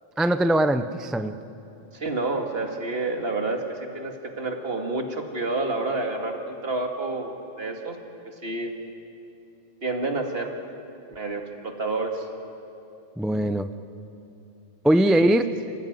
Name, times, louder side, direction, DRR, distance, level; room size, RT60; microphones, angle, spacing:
voice 1, 0.2-1.3 13.2-13.7 14.8-15.4, right 1 dB, ahead, 9 dB, 0.4 m, -21 dB
voice 2, 1.9-8.0 8.3-8.7 9.8-10.5 11.1-12.3 15.1-15.4, right 2 dB, 55° right, 3 dB, 2.2 m, -29 dB
27.5 x 17.0 x 9.3 m, 2.8 s
omnidirectional pair, 1.2 m